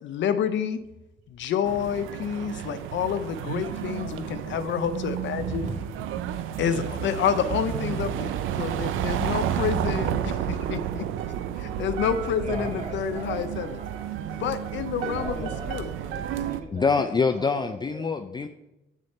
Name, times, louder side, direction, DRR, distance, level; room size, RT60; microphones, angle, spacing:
voice 1, 0.0-0.8 1.3-5.7 6.6-11.0 11.6-13.8 14.4-15.9, left 8 dB, 70° left, 11 dB, 0.6 m, -28 dB
sound 1, 1.6-16.6, right 10 dB, 90° right, 0.5 m, -31 dB
voice 2, 5.3-5.8 12.4-14.1 14.9-18.1, right 3 dB, 35° right, -1 dB, 2.1 m, -39 dB
voice 3, 16.7-18.5, left 5 dB, 20° left, 7 dB, 0.4 m, -25 dB
7.6 x 6.4 x 4.2 m, 0.94 s
cardioid pair, 90°, 20 cm